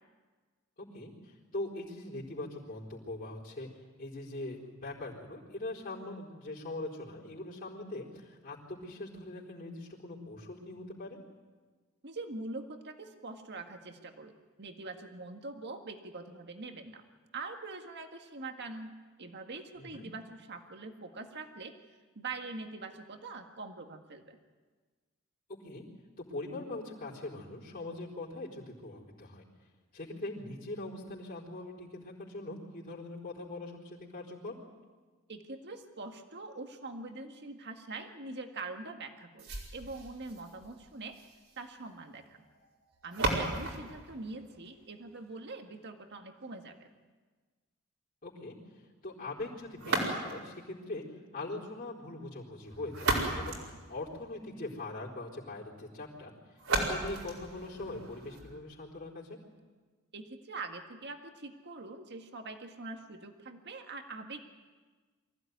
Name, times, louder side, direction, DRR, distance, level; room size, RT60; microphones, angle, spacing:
voice 1, 0.9-3.7 4.0-11.2 19.8-20.0 25.5-25.8 26.2-29.4 29.9-34.5 48.2-48.6 49.0-51.0 51.3-56.3 56.7-59.4, left 2 dB, 40° left, -6 dB, 4.1 m, -42 dB
voice 2, 12.0-17.0 17.3-21.7 22.2-24.4 35.3-41.2 41.6-42.4 43.0-46.9 60.1-64.4, right 3 dB, 50° right, 5 dB, 1.8 m, -43 dB
sound 1, 39.4-45.4 49.8-50.6 52.6-54.6 56.6-58.6, right 2 dB, 75° right, 5.0 m, -36 dB
24.0 x 15.5 x 9.4 m, 1.4 s
head